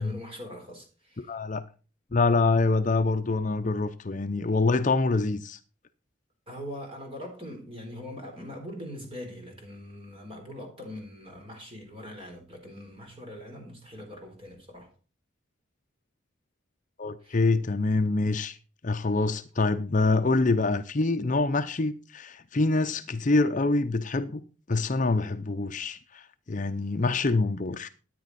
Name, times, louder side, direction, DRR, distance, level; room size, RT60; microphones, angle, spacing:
voice 1, 0.0-1.3 6.5-14.9 17.2-17.4, left 1 dB, 25° right, 4.0 m, -42 dB
voice 2, 1.2-1.6 2.1-5.6 17.0-18.6 18.8-24.4 24.7-27.9, left 3 dB, 40° left, 0.6 m, -25 dB
14.0 x 9.6 x 4.2 m
head